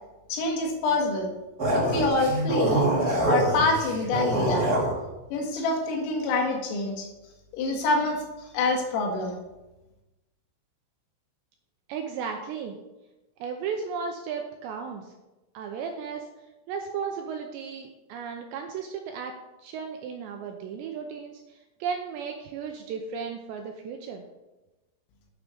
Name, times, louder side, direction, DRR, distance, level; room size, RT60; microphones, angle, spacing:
voice 1, 0.3-1.3 1.7-2.9 3.3-4.7 5.3-7.1 7.5-9.3, left 2 dB, 80° left, 1 dB, 4.3 m, -26 dB
sound 1, 1.6-4.9, right 1 dB, 55° right, 1.0 m, -24 dB
voice 2, 11.9-12.8 13.4-15.1 15.5-16.3 16.7-24.2, right 6 dB, 80° right, 4 dB, 2.6 m, -35 dB
10.5 x 6.2 x 6.7 m, 1.1 s
omnidirectional pair, 5.8 m